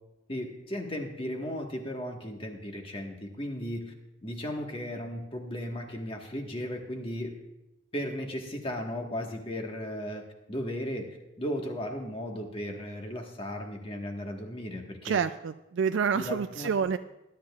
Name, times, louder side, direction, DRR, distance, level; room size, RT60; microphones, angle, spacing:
voice 1, 0.3-3.9 4.2-7.4 7.9-10.2 10.5-15.2 16.1-16.7, equal, 30° left, 2 dB, 1.4 m, -36 dB
voice 2, 15.0-17.0, right 6 dB, 75° right, 9 dB, 0.3 m, -28 dB
20.5 x 10.5 x 2.4 m, 0.94 s
head